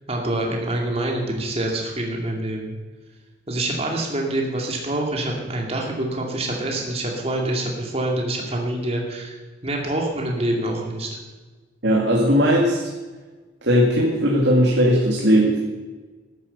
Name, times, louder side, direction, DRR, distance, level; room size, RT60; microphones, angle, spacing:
voice 1, 0.1-2.7 3.5-9.4 9.6-11.1, right 1 dB, 35° right, 0 dB, 2.5 m, -26 dB
voice 2, 11.8-12.8 13.6-15.6, equal, 70° right, -2 dB, 2.3 m, -18 dB
13.0 x 11.0 x 6.8 m, 1.3 s
head